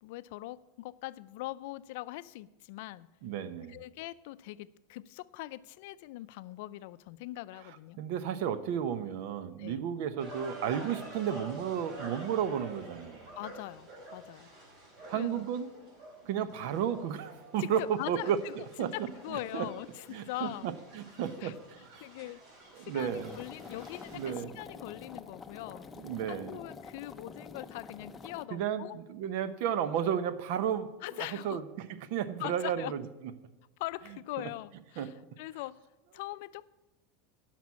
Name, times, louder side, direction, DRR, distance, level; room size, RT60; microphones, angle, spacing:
voice 1, 0.0-3.1 3.7-8.0 9.6-9.8 13.4-14.5 15.1-15.5 17.6-18.5 18.8-20.7 21.4-21.5 22.0-22.4 22.8-25.9 26.3-29.0 31.0-31.6 32.4-32.9 33.8-35.8 36.1-36.7, left 17 dB, 65° left, 16 dB, 0.4 m, -42 dB
voice 2, 3.2-3.8 8.0-13.3 15.1-15.7 16.2-18.4 18.8-18.9 19.3-19.7 20.1-22.0 22.7-23.4 24.1-24.5 26.0-26.6 28.5-30.9 31.2-31.6 32.0-33.0 35.0-35.1, right 9 dB, 65° right, 13 dB, 0.8 m, -33 dB
sound 1, 10.2-24.3, right 2 dB, 45° right, 4.3 m, -49 dB
sound 2, 23.0-28.5, left 4 dB, 20° left, 0.7 m, -47 dB
10.5 x 6.0 x 8.4 m, 1.0 s
supercardioid pair, 125°, 0 cm